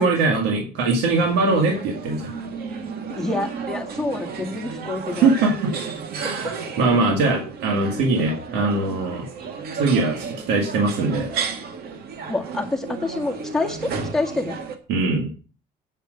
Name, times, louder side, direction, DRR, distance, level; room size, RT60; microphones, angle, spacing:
voice 1, 0.0-2.3 5.2-5.7 6.1-9.3 9.7-11.3 14.9-15.3, right 3 dB, 90° right, 1 dB, 2.0 m, -21 dB
sound 1, 1.1-14.8, right 5 dB, 70° right, 1.7 m, -33 dB
voice 2, 3.2-5.3 6.2-6.5 12.3-14.6, left 2 dB, ahead, -1 dB, 2.1 m, -27 dB
8.8 x 5.1 x 7.7 m, 0.37 s
cardioid pair, 110°, 17 cm